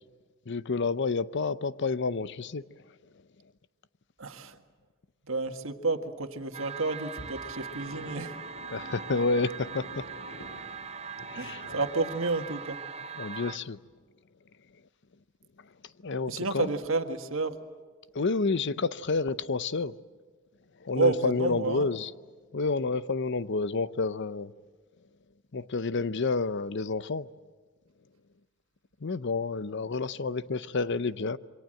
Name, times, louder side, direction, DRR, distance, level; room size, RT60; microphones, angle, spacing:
voice 1, 0.5-2.6 8.7-10.1 10.5-10.7 11.1-11.8 13.2-13.8 16.0-16.7 18.1-20.0 20.8-22.1 22.5-24.5 25.5-27.3 29.0-31.4, left 4 dB, 60° left, 0.7 m, -29 dB
voice 2, 4.2-4.6 5.3-8.3 11.4-12.8 16.3-17.6 21.0-21.9, right 3 dB, 65° right, 1.7 m, -30 dB
sound 1, 6.5-13.6, right 6 dB, 30° right, 0.8 m, -41 dB
sound 2, 7.2-11.9, equal, 90° left, 7.7 m, -48 dB
27.5 x 24.0 x 7.8 m
head